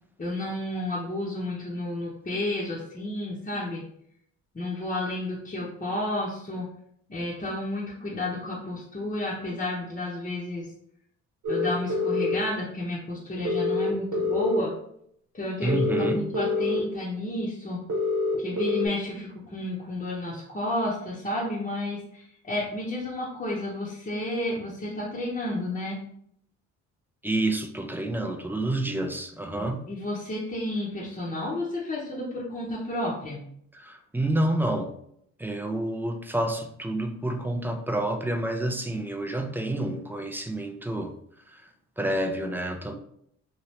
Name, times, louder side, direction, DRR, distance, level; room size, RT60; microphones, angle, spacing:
voice 1, 0.2-3.8 4.5-6.7 7.1-10.7 11.5-14.7 15.3-17.8 18.4-26.0 29.6-33.4, left 1 dB, 25° left, 0.8 m, -31 dB
sound 1, 11.4-12.4 13.4-14.6 15.7-16.8 17.9-18.9, left 3 dB, 75° right, 0.9 m, -26 dB
voice 2, 15.6-16.2 27.2-29.8 33.7-34.9 35.4-41.1 41.5-41.6 42.0-42.9, right 1 dB, 5° right, 0.4 m, -28 dB
2.9 x 2.6 x 3.1 m
cardioid pair, 90°, 30 cm